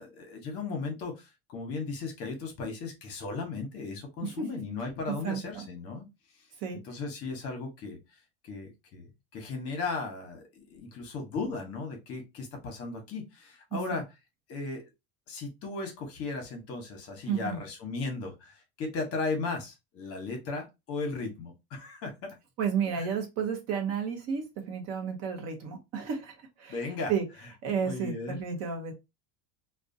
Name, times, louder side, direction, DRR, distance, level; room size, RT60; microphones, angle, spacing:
voice 1, 0.0-6.1 6.9-8.0 8.4-9.1 9.3-10.4 10.7-14.0 14.5-14.8 15.3-22.3 23.0-23.1 26.7-27.1 27.8-28.4, left 3 dB, 40° left, 0.9 m, -36 dB
voice 2, 5.1-5.6 6.6-6.8 13.7-14.0 17.3-17.6 22.6-27.2 27.6-28.9, right 7 dB, 45° right, 0.7 m, -32 dB
2.4 x 2.2 x 2.6 m
cardioid pair, 150°, 35 cm